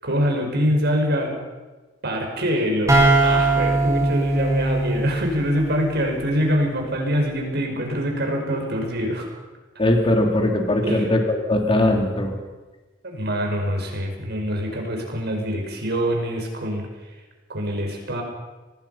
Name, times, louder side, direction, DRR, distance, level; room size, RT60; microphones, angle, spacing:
voice 1, 0.0-1.4 2.0-9.3 10.8-11.1 13.0-16.9 17.5-18.2, equal, 60° right, 2 dB, 5.5 m, -24 dB
sound 1, 2.9-6.5, right 2 dB, 15° right, 5.0 m, -21 dB
voice 2, 9.8-12.3, left 1 dB, 30° left, 3 dB, 3.1 m, -20 dB
24.5 x 19.5 x 5.8 m, 1.2 s
head